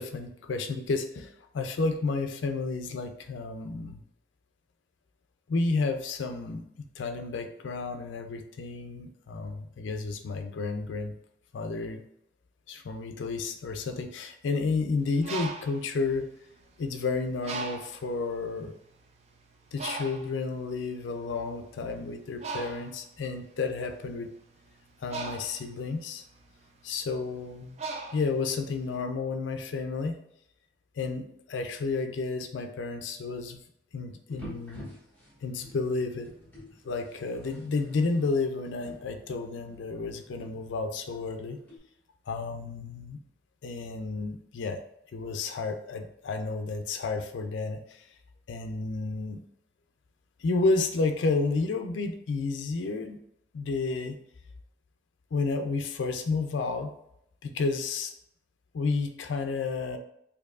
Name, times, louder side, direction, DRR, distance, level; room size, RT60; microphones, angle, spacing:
voice 1, 0.0-4.0 5.5-11.2 11.5-12.0 12.7-16.3 16.8-18.7 19.7-24.3 25.0-26.2 26.8-27.8 28.1-30.2 31.0-33.6 33.9-34.9 35.4-36.3 36.8-41.6 42.3-43.2 43.6-44.8 45.1-48.1 48.5-49.5 50.4-53.2 53.5-54.2 55.3-56.9 57.4-58.1 58.7-60.0, left 3 dB, 80° left, 6 dB, 0.4 m, -31 dB
Bird, 15.0-16.9 17.4-18.1 18.8-18.9 19.2-28.9, right 4 dB, 35° right, 0.4 m, -39 dB
sound 1, 34.3-41.8, equal, 10° left, 1.0 m, -50 dB
4.4 x 2.6 x 2.4 m, 0.75 s
head